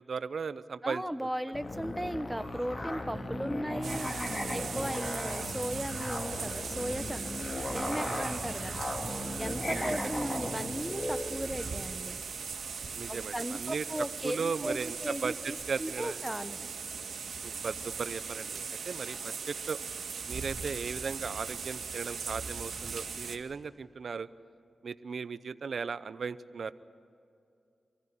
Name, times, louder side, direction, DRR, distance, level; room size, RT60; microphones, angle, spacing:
voice 1, 0.0-1.0 4.3-4.7 7.9-8.3 9.0-9.9 12.9-13.8 14.2-16.3 17.4-19.8 20.3-24.3 24.8-26.7, right 5 dB, 70° right, 15 dB, 0.7 m, -37 dB
voice 2, 0.8-7.4 7.7-8.8 9.4-12.2 13.1-16.7, equal, 5° right, 10 dB, 1.1 m, -37 dB
sound 1, 1.5-9.8, left 3 dB, 50° left, 0.6 m, -44 dB
Musical instrument, 1.6-11.8, left 1 dB, 30° left, 3.1 m, -37 dB
sound 2, 3.8-23.4, right 5 dB, 85° right, 2.3 m, -39 dB
26.0 x 15.0 x 9.8 m, 2.4 s
cardioid pair, 55°, 0 cm